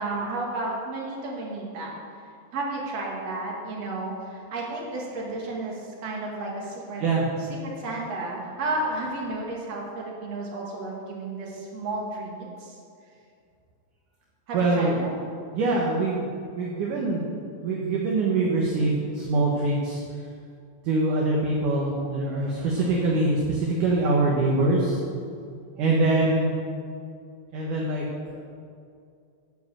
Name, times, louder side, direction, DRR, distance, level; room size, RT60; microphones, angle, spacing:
voice 1, 0.0-2.0 2.5-7.0 7.4-12.8 14.5-15.1, right 2 dB, 45° right, -3 dB, 2.7 m, -32 dB
voice 2, 14.5-14.9 15.5-16.3 16.5-17.2 17.6-20.0 20.8-25.0 25.8-26.5 27.5-28.4, right 2 dB, 65° right, -2 dB, 2.3 m, -24 dB
11.5 x 7.8 x 7.6 m, 2.4 s
omnidirectional pair, 5.0 m